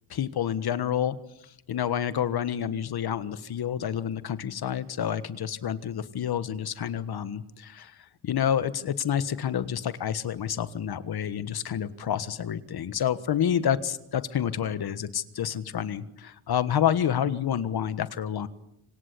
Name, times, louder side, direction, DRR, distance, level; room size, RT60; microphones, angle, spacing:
voice 1, 0.1-1.2 1.7-8.0 8.2-18.5, left 9 dB, 50° left, 14 dB, 1.5 m, -28 dB
26.0 x 26.0 x 8.4 m, 0.77 s
cardioid pair, 165°, 49 cm